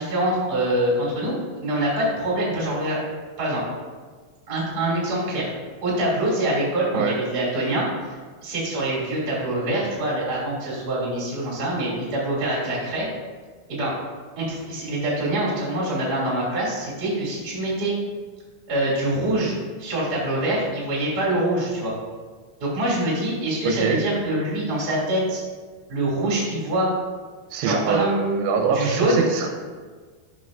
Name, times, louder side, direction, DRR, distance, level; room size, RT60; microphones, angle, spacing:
voice 1, 0.0-3.0 3.4-3.6 4.5-5.5 5.8-7.9 8.4-13.0 13.7-13.9 14.4-17.9 18.7-21.9 22.6-25.4 25.9-26.9 27.6-28.1 28.7-29.2, right 1 dB, 30° right, -6 dB, 2.0 m, -25 dB
voice 2, 23.7-24.0 27.5-29.5, right 5 dB, 85° right, 3 dB, 3.0 m, -23 dB
12.5 x 5.6 x 2.5 m, 1.5 s
omnidirectional pair, 5.4 m